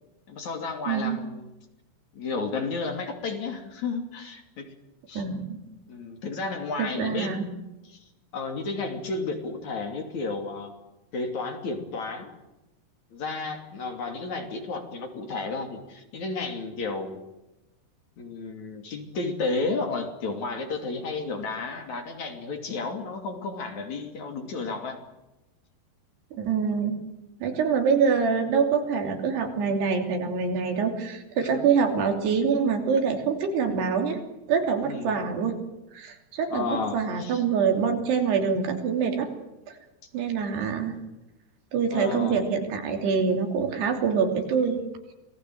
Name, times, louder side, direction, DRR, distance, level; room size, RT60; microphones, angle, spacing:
voice 1, 0.3-1.5 2.1-4.7 5.1-5.2 5.9-8.0 8.3-10.7 11.1-12.4 13.1-17.2 18.2-25.0 31.4-31.7 34.8-35.1 36.5-37.4 41.9-42.4, left 3 dB, 50° left, 4 dB, 3.9 m, -32 dB
voice 2, 0.9-1.2 5.2-5.6 6.8-7.5 26.3-27.0 27.4-34.2 34.5-35.6 35.9-39.3 39.7-39.8 40.1-41.0 41.7-44.8, right 6 dB, 85° right, 4 dB, 5.1 m, -25 dB
27.5 x 19.0 x 7.9 m, 0.98 s
omnidirectional pair, 4.6 m